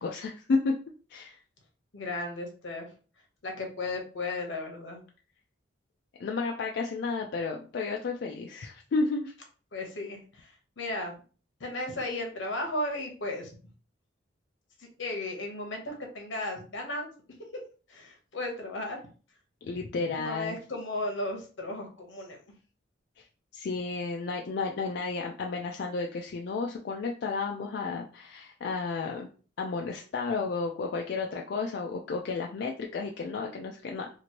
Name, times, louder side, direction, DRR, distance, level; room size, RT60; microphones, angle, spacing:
voice 1, 0.0-0.7 1.1-1.4 6.2-9.3 19.6-20.6 23.5-29.3 29.6-34.1, left 4 dB, 60° left, 1 dB, 0.3 m, -32 dB
voice 2, 1.9-2.9 3.4-5.0 9.7-11.1 11.6-13.5 14.8-17.1 17.9-19.0 20.1-22.4, left 2 dB, 85° left, 2 dB, 0.9 m, -35 dB
2.9 x 2.5 x 2.9 m, 0.38 s
head